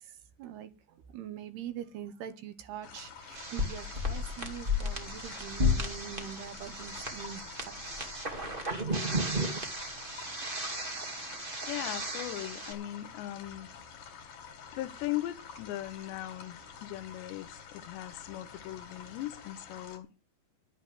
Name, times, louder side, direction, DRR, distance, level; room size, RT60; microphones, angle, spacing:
voice 1, 0.0-7.7, right 9 dB, 70° right, 2.8 m, -44 dB
sound 1, 2.8-20.0, left 6 dB, 55° left, 3.2 m, -49 dB
sound 2, 3.3-12.7, left 1 dB, 45° right, 0.6 m, -34 dB
voice 2, 11.6-13.7 14.7-20.1, left 15 dB, 80° left, 2.9 m, -39 dB
11.5 x 8.5 x 7.6 m
omnidirectional pair, 5.2 m